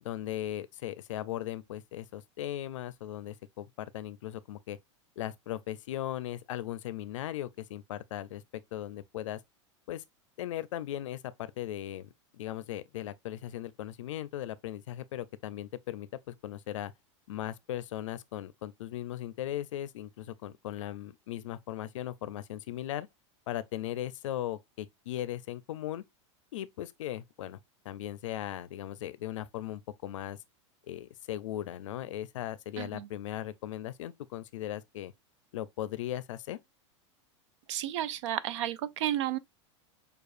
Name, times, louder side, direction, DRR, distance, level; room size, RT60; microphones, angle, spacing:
voice 1, 0.0-4.8 5.2-8.4 8.7-9.4 9.9-10.0 10.4-16.9 17.3-23.1 23.5-26.0 26.5-27.6 27.8-30.4 30.9-35.1 35.5-36.6, left 13 dB, 85° left, 0.5 m, -38 dB
voice 2, 32.8-33.1 37.7-39.4, right 12 dB, 70° right, 0.5 m, -32 dB
6.7 x 2.4 x 2.5 m
supercardioid pair, 135°, 16 cm